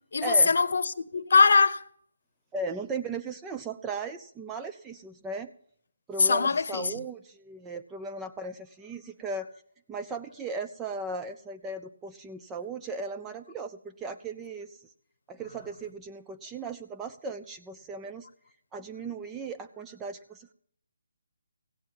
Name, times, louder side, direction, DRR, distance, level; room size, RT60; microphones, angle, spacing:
voice 1, 0.1-1.8 6.2-7.0, left 4 dB, 65° left, 0.8 m, -22 dB
voice 2, 2.5-5.5 6.1-9.5 9.9-14.8 15.3-18.3 18.7-20.5, right 3 dB, 10° right, 0.4 m, -37 dB
16.5 x 9.3 x 5.4 m
hypercardioid pair, 165°, 0 cm